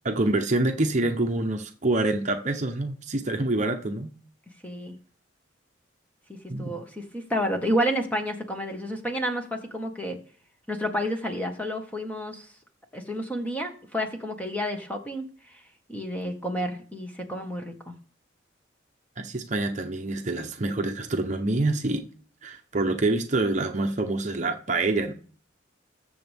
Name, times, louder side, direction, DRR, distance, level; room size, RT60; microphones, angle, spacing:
voice 1, 0.0-4.1 6.5-6.8 19.2-22.0 22.4-25.1, right 2 dB, 40° right, 0.9 m, -26 dB
voice 2, 4.6-5.0 6.3-10.2 10.7-12.5 12.9-15.6 15.9-17.9, equal, 10° left, 1.5 m, -30 dB
20.5 x 7.0 x 3.6 m
head